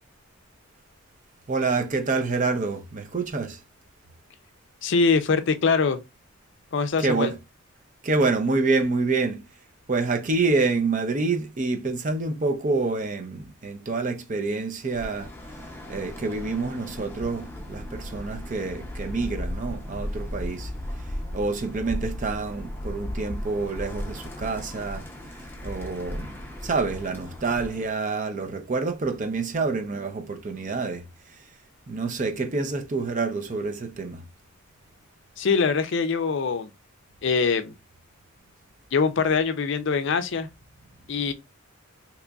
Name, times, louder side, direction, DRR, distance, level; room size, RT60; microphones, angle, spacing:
voice 1, 1.5-3.6 7.0-7.4 8.0-9.4 9.9-15.3 15.9-20.7 21.3-25.1 25.6-31.1 31.9-34.2, right 3 dB, 35° right, 0.5 m, -27 dB
voice 2, 4.8-6.0 6.7-7.3 35.4-36.7 37.2-37.7 38.9-40.5 41.1-41.3, left 5 dB, 60° left, 0.4 m, -23 dB
Bird, 14.8-27.9, left 1 dB, 10° left, 0.6 m, -36 dB
3.7 x 2.9 x 2.3 m
head